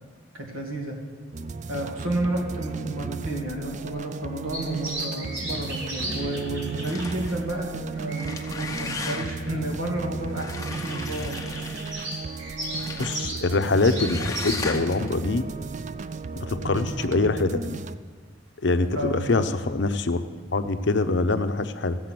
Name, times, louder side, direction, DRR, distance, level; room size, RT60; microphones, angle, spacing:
voice 1, 0.3-1.0 1.7-11.6 16.5-16.8 18.9-19.5, right 1 dB, 90° right, 1 dB, 2.3 m, -31 dB
sound 1, 1.3-18.0, right 4 dB, 35° right, 0.3 m, -35 dB
sound 2, 4.5-14.8, right 1 dB, 65° right, 4.7 m, -37 dB
sound 3, 6.8-7.5 8.0-9.5 10.4-12.1 12.8-13.2 13.8-15.1, left 3 dB, 15° left, 0.7 m, -36 dB
voice 2, 12.8-15.4 16.4-17.8 18.6-20.2 20.5-22.0, left 3 dB, 55° left, 10 dB, 0.6 m, -24 dB
15.5 x 7.7 x 6.0 m, 1.5 s
head